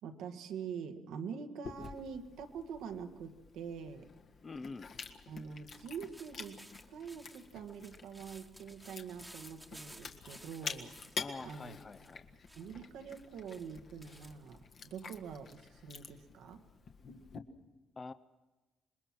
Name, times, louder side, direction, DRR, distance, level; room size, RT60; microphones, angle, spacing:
voice 1, 0.0-4.1 5.3-10.9 11.4-11.8 12.6-16.6, right 6 dB, 85° right, 7 dB, 1.7 m, -45 dB
Chewing mastication, 1.6-17.4, left 5 dB, 55° left, 1.6 m, -49 dB
voice 2, 4.4-4.9 11.2-12.2 18.0-18.1, left 4 dB, 30° left, 12 dB, 0.7 m, -45 dB
sound 1, 5.7-15.6, equal, 5° right, 1.4 m, -58 dB
27.0 x 21.0 x 6.2 m, 1.2 s
cardioid pair, 90°, 0 cm